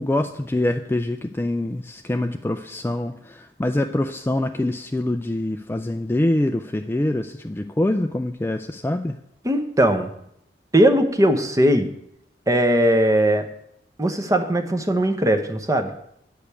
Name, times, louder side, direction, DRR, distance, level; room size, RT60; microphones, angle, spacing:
voice 1, 0.0-9.2, left 1 dB, 15° left, 7 dB, 0.3 m, -25 dB
voice 2, 9.4-10.1 10.7-11.9 12.5-13.4 14.0-15.9, right 1 dB, 20° right, 7 dB, 0.9 m, -19 dB
10.0 x 5.1 x 8.2 m, 0.75 s
head